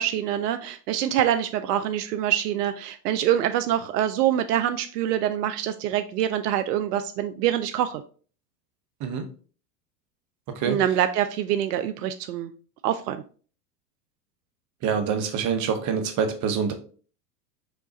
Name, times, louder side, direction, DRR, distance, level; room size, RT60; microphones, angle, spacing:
voice 1, 0.0-8.0 10.7-12.5 12.8-13.2, right 11 dB, 70° right, 9 dB, 0.5 m, -25 dB
voice 2, 14.8-16.7, right 6 dB, 35° right, 7 dB, 1.0 m, -25 dB
5.2 x 2.3 x 3.9 m, 0.41 s
hypercardioid pair, 95°, 49 cm